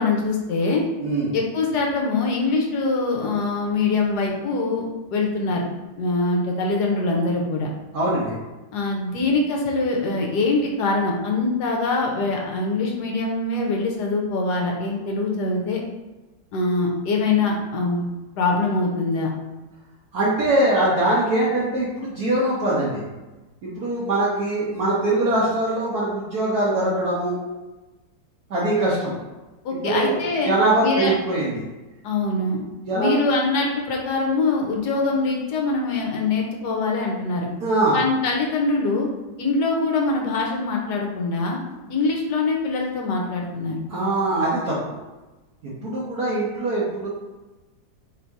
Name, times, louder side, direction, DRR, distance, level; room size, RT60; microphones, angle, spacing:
voice 1, 0.0-0.8 1.3-5.6 6.0-7.7 8.7-15.8 16.5-18.1 18.4-19.3 29.6-30.5 30.8-31.1 32.0-32.6 32.9-37.5 37.9-39.1 39.4-41.6 41.9-43.8, left 3 dB, 70° left, -1 dB, 1.3 m, -23 dB
voice 2, 1.0-1.3 7.9-8.4 20.1-23.0 23.6-27.4 28.5-29.2 29.8-30.2 30.4-31.6 32.9-33.1 37.6-38.0 43.9-45.0 45.6-47.1, right 2 dB, 60° right, -7 dB, 1.3 m, -22 dB
3.6 x 2.7 x 4.5 m, 1.1 s
omnidirectional pair, 1.9 m